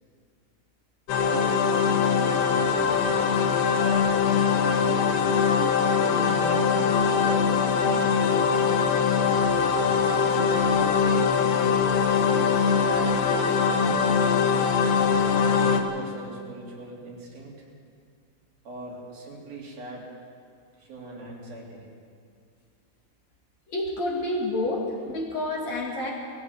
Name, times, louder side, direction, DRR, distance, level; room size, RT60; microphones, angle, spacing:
sound 1, 1.1-15.8, left 6 dB, 90° left, 3.3 m, -22 dB
voice 1, 1.3-3.3 3.8-5.1 6.0-8.4 9.0-10.0 10.5-11.5 12.2-13.1 13.5-14.5 15.4-17.7 18.6-20.1 20.8-21.9, right 2 dB, 65° right, -3 dB, 5.0 m, -41 dB
voice 2, 23.7-26.1, left 1 dB, 50° left, -2 dB, 3.2 m, -29 dB
20.5 x 15.5 x 8.2 m, 2.2 s
omnidirectional pair, 4.7 m